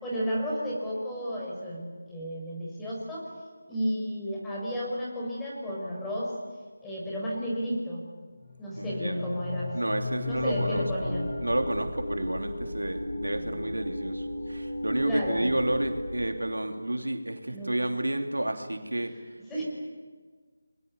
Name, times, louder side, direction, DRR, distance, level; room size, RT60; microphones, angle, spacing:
voice 1, 0.0-3.3 3.7-6.3 6.8-8.1 8.6-9.8 10.2-11.3 15.0-15.4 17.5-17.7 19.5-19.6, equal, 5° left, -5 dB, 5.2 m, -32 dB
sound 1, 8.4-12.4, left 3 dB, 40° left, 4.7 m, -36 dB
voice 2, 8.8-9.3 9.7-11.1 11.4-19.1, right 1 dB, 90° right, 5 dB, 3.1 m, -31 dB
sound 2, 10.3-16.3, left 1 dB, 85° left, 7.9 m, -35 dB
29.5 x 22.0 x 8.7 m, 1.5 s
figure-of-eight pair, 165°, 0 cm